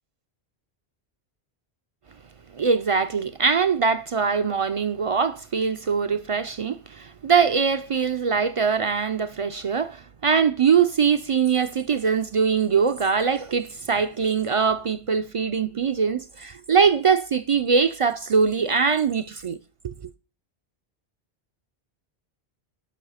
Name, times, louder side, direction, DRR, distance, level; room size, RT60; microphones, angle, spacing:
voice 1, 2.5-19.6 19.8-19.9, right 6 dB, 55° right, 0.3 m, -22 dB
11.0 x 5.5 x 4.9 m
omnidirectional pair, 1.1 m